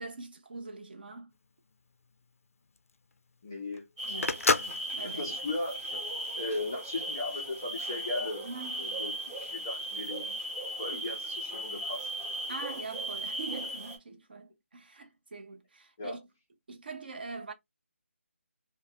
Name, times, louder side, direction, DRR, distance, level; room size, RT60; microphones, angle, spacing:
voice 1, 0.0-1.3 4.0-5.4 8.4-8.9 10.9-11.1 12.5-16.3 16.7-17.5, right 4 dB, 45° right, 0.7 m, -43 dB
Telephone, 1.3-6.5, left 4 dB, 85° left, 0.4 m, -32 dB
voice 2, 3.4-4.3 5.0-6.0 6.4-8.5 8.8-10.4 10.8-12.1 16.0-16.2, left 2 dB, 15° left, 0.3 m, -37 dB
sound 1, 4.0-14.0, right 1 dB, 10° right, 0.7 m, -37 dB
2.6 x 2.0 x 3.2 m
figure-of-eight pair, 175°, 7 cm